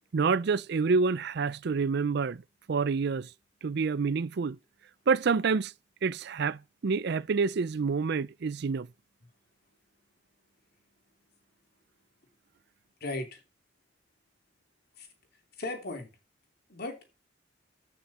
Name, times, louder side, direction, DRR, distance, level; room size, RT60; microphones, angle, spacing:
voice 1, 0.1-2.4 2.7-3.3 3.6-4.6 5.1-5.7 6.0-8.9, right 5 dB, 60° right, 0.5 m, -27 dB
voice 2, 13.0-13.4 15.0-15.1 15.6-16.1 16.7-17.0, left 2 dB, 55° left, 2.9 m, -36 dB
14.5 x 6.2 x 4.2 m
head